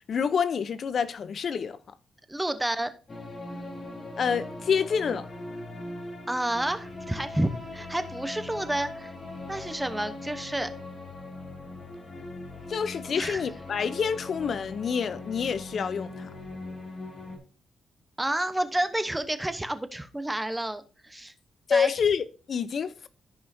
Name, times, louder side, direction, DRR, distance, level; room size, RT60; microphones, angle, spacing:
voice 1, 0.1-1.8 4.2-5.3 12.7-16.3 21.7-23.1, left 6 dB, 50° left, 0.6 m, -27 dB
voice 2, 2.3-2.9 6.3-9.1 9.5-10.7 13.1-13.4 18.2-21.3 21.7-21.9, right 1 dB, 10° right, 0.9 m, -30 dB
sound 1, 3.1-17.4, left 2 dB, 30° left, 3.0 m, -40 dB
14.5 x 5.6 x 2.7 m
cardioid pair, 125°, 0 cm